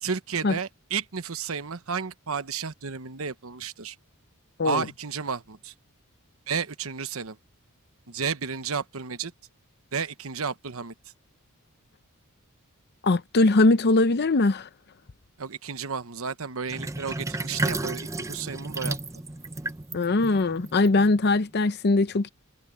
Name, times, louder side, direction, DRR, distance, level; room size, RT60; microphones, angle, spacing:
voice 1, 0.0-4.0 4.6-5.7 6.5-7.4 8.1-9.3 9.9-10.9 15.4-19.0, right 6 dB, 70° right, 1.0 m, -32 dB
voice 2, 13.0-14.7 19.9-22.3, left 2 dB, 50° left, 0.7 m, -21 dB
Sink (filling or washing), 16.7-21.4, right 2 dB, 15° right, 0.6 m, -33 dB
head